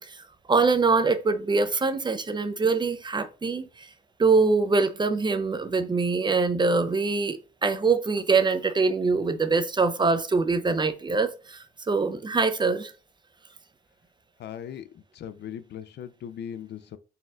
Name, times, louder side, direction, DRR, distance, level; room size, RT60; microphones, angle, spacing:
voice 1, 0.0-3.9 4.2-12.9, right 4 dB, 25° right, 0.5 m, -24 dB
voice 2, 14.4-17.0, left 9 dB, 60° left, 0.4 m, -39 dB
4.1 x 2.3 x 3.7 m
cardioid pair, 90°, 20 cm